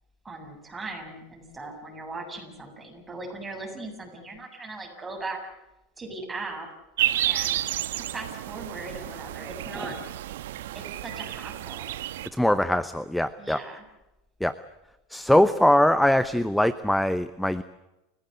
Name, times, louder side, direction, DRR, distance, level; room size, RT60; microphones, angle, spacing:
voice 1, 0.2-5.4 6.0-6.7 7.2-10.0 10.7-11.9 13.4-13.8, right 3 dB, 15° right, 2 dB, 7.9 m, -39 dB
sound 1, 7.0-12.3, right 13 dB, 80° right, 1.3 m, -31 dB
voice 2, 12.3-13.6 14.4-14.5 15.1-17.6, left 1 dB, 5° left, 14 dB, 0.8 m, -22 dB
29.5 x 16.0 x 8.1 m, 0.97 s
hypercardioid pair, 100°, 0 cm